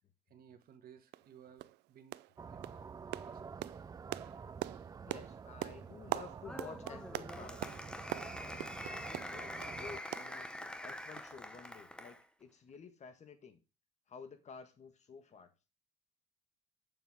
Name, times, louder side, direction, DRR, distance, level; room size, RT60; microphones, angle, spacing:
voice 1, 0.3-2.1 2.4-2.7 3.2-3.4, right 8 dB, 60° right, 1.6 m, -58 dB
sound 1, 0.6-0.7 1.1-1.3 1.6-1.8 2.1-2.4 2.6-9.8 10.1-10.9 11.2-11.3 11.6-11.7, right 18 dB, 85° right, 0.4 m, -43 dB
sound 2, 2.4-10.0, right 5 dB, 20° right, 0.4 m, -49 dB
voice 2, 5.0-7.7 8.4-13.6 14.1-15.5, left 5 dB, 45° left, 1.5 m, -52 dB
Applause, 6.4-12.2, left 1 dB, 5° left, 1.0 m, -45 dB
8.2 x 7.1 x 3.5 m
cardioid pair, 110°, 17 cm